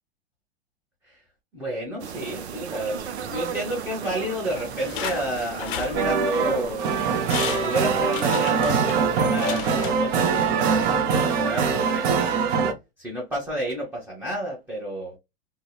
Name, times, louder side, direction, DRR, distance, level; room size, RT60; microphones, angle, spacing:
voice 1, 1.5-6.9 7.6-12.4 13.0-15.2, right 1 dB, 5° right, 0.8 m, -31 dB
sound 1, 2.0-9.6, right 8 dB, 90° right, 0.5 m, -37 dB
sound 2, 4.5-6.5 6.9-7.0 7.3-10.5 10.8-10.9, left 10 dB, 50° left, 0.6 m, -35 dB
sound 3, 5.9-12.7, right 5 dB, 40° right, 0.6 m, -23 dB
2.8 x 2.0 x 2.2 m
hypercardioid pair, 115°, 32 cm